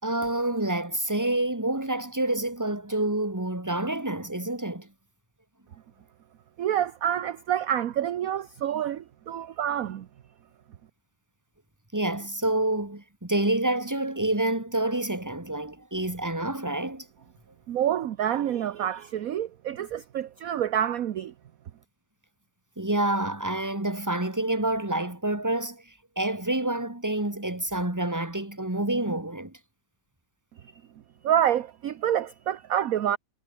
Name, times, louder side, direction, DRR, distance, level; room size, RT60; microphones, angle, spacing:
voice 1, 0.0-4.9 11.9-17.1 22.8-29.6, right 1 dB, 10° right, 3.0 m, -28 dB
voice 2, 6.6-10.1 17.7-21.3 31.2-33.2, right 10 dB, 60° right, 1.2 m, -27 dB
omnidirectional pair, 1.9 m